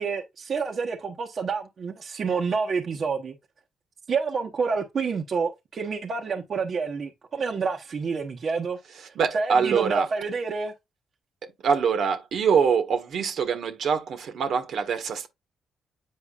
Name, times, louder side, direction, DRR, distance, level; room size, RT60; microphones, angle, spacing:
voice 1, 0.0-3.3 4.1-8.8 9.1-10.7, right 5 dB, 50° right, 1.1 m, -28 dB
voice 2, 9.1-10.1 11.6-15.3, right 6 dB, 65° right, 1.4 m, -24 dB
8.4 x 4.8 x 2.4 m
cardioid pair, 90°, 0 cm